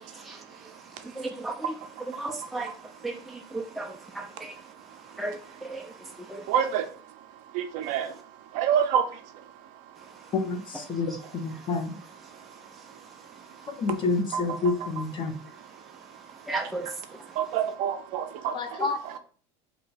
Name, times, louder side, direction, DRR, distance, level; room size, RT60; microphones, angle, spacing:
voice 1, 1.2-1.5 2.2-2.7 3.0-3.2 3.5-3.9 4.4-4.5 5.2-5.4 5.7-5.8 6.3-6.4 16.5-16.9 18.8-18.9, right 2 dB, ahead, 0.4 m, -33 dB
voice 2, 6.5-6.9 7.5-8.1 8.5-9.0 14.3-14.9 17.4-19.2, right 8 dB, 60° right, 0.5 m, -27 dB
voice 3, 11.4-11.9 13.8-15.3 18.5-19.0, left 3 dB, 35° left, 0.6 m, -28 dB
2.8 x 2.2 x 4.1 m
supercardioid pair, 105°, 14 cm